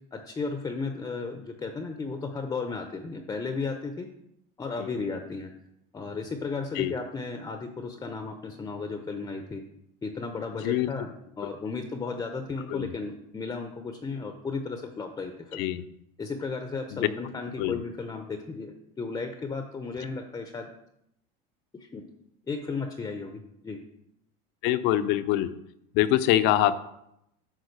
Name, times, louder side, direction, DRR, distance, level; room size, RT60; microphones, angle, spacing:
voice 1, 0.1-4.1 4.6-5.5 5.9-9.6 10.0-11.1 11.4-15.6 16.2-20.7 21.8-22.0 22.5-23.8, left 4 dB, 15° left, 6 dB, 0.7 m, -34 dB
voice 2, 24.6-25.5 25.9-26.8, left 13 dB, 65° left, 12 dB, 0.6 m, -24 dB
9.7 x 3.7 x 6.6 m, 0.79 s
supercardioid pair, 130°, 20 cm